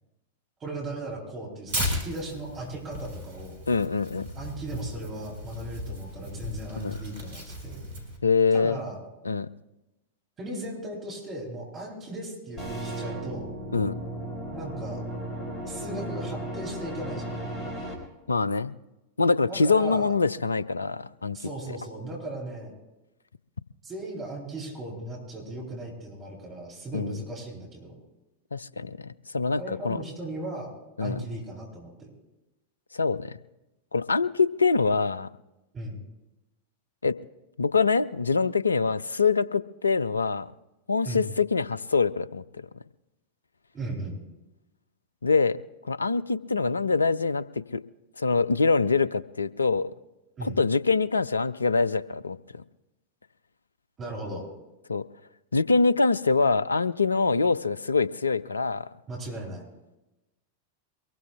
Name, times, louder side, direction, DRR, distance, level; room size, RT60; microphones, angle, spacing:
voice 1, 0.6-3.6 4.3-7.8 8.5-9.0 10.4-13.5 14.5-15.0 15.6-17.7 19.5-20.1 21.3-22.7 23.8-27.9 29.6-30.7 31.0-32.1 35.7-36.0 41.0-41.2 43.7-44.2 50.4-50.6 54.0-54.5 59.1-59.6, right 1 dB, 25° right, -2 dB, 7.9 m, -37 dB
Tearing, 1.7-8.2, left 1 dB, 65° right, 4.6 m, -36 dB
voice 2, 3.7-4.3 6.8-7.0 8.2-8.7 9.3-9.5 13.7-14.0 18.3-18.7 19.2-21.4 26.9-27.2 28.5-29.0 29.3-30.0 31.0-31.2 32.9-33.3 33.9-35.3 37.0-37.2 37.6-40.5 40.9-42.4 45.2-45.6 45.8-47.4 47.7-47.8 48.2-49.9 50.4-52.6 54.9-55.0 55.5-58.9, left 4 dB, 75° left, 18 dB, 0.4 m, -24 dB
sound 1, 12.6-17.9, right 1 dB, 25° left, 4.6 m, -35 dB
23.5 x 22.0 x 2.4 m, 0.98 s
figure-of-eight pair, 90°, 0 cm